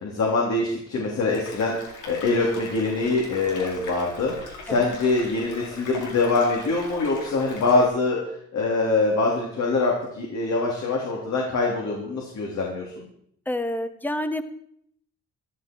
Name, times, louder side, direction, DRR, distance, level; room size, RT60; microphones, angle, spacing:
voice 1, 0.0-1.8 2.1-4.3 4.7-8.2 8.5-13.1, left 3 dB, 65° left, -2 dB, 3.4 m, -24 dB
sound 1, 1.3-7.9, left 3 dB, 80° left, 4.1 m, -40 dB
voice 2, 13.5-14.4, left 1 dB, 5° left, 10 dB, 1.3 m, -28 dB
14.0 x 12.0 x 4.6 m, 0.69 s
cardioid pair, 90°, 30 cm